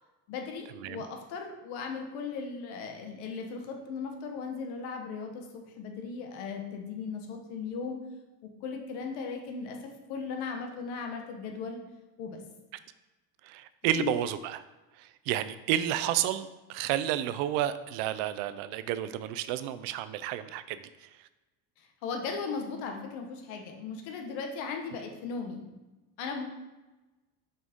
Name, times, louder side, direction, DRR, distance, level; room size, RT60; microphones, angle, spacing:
voice 1, 0.3-8.0 8.4-11.8 12.2-12.4 14.0-14.1 22.0-25.7 26.2-26.4, left 5 dB, 75° left, 3 dB, 1.2 m, -37 dB
voice 2, 13.4-14.6 15.0-20.8, right 11 dB, 85° right, 13 dB, 0.6 m, -31 dB
6.2 x 5.4 x 3.6 m, 1.1 s
cardioid pair, 180°, 43 cm